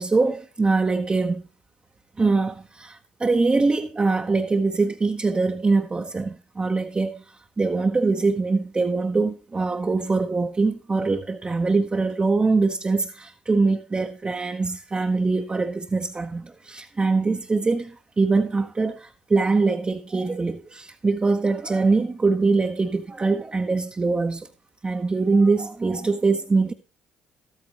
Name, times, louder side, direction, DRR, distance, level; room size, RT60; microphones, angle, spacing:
voice 1, 0.0-1.4 2.2-7.2 7.6-24.5 24.8-26.7, right 3 dB, 25° right, 0.8 m, -23 dB
13.0 x 8.9 x 3.0 m
figure-of-eight pair, 50°, 5 cm